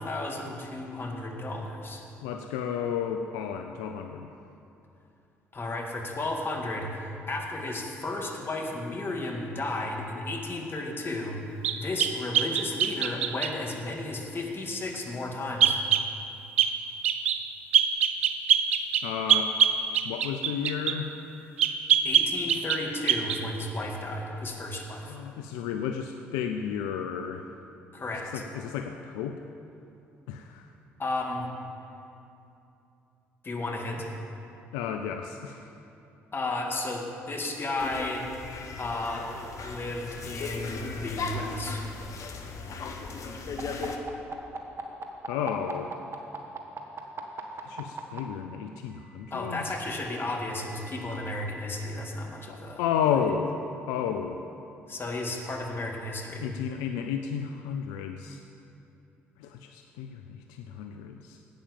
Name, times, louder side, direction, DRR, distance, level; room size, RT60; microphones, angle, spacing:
voice 1, 0.0-2.0 5.5-11.4 11.7-15.8 22.0-25.2 27.9-28.5 31.0-31.5 33.4-34.1 36.3-38.3 38.8-39.3 39.6-41.8 49.3-52.8 54.9-56.5, left 2 dB, 35° left, 1 dB, 2.1 m, -33 dB
voice 2, 2.2-4.3 19.0-19.5 20.0-21.1 25.0-27.4 28.3-29.4 30.3-30.7 34.7-35.7 45.3-45.9 47.6-49.7 52.5-53.5 53.9-54.4 56.4-58.4 59.4-61.4, left 8 dB, 75° left, 6 dB, 0.5 m, -32 dB
sound 1, 11.6-13.6 15.6-16.1 16.6-16.8 17.0-17.4 17.7-21.0 21.6-22.8 23.1-23.4, right 8 dB, 90° right, 0.5 m, -23 dB
sound 2, 37.8-44.0, left 4 dB, 55° left, 1.2 m, -37 dB
sound 3, 43.6-48.2 49.3-51.6, right 4 dB, 40° right, 1.5 m, -40 dB
10.5 x 8.7 x 7.1 m, 2.7 s
hypercardioid pair, 50°, 6 cm